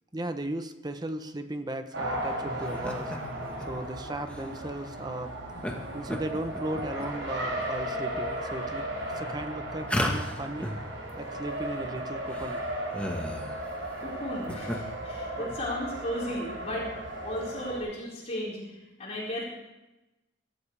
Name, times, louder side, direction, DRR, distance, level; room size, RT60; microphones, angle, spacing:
voice 1, 0.1-3.1 3.7-5.4 5.7-8.8 9.1-10.7 11.2-12.6 15.4-15.6, right 1 dB, 20° right, 8 dB, 0.9 m, -36 dB
Race car auto racing, 1.9-17.8, right 1 dB, 75° right, 6.7 m, -36 dB
sound 1, 2.6-3.2 3.6-3.7 4.3-4.4 5.6-5.7 6.1-7.1 7.6-8.0 8.7-8.8 9.9-10.8 11.1-11.2 11.4-11.5 11.9-12.0 12.3-13.6 14.3-14.8, left 1 dB, 5° left, 1.5 m, -33 dB
voice 2, 14.0-19.4, left 1 dB, 35° left, -6 dB, 5.0 m, -35 dB
23.5 x 13.5 x 3.4 m, 1.0 s
head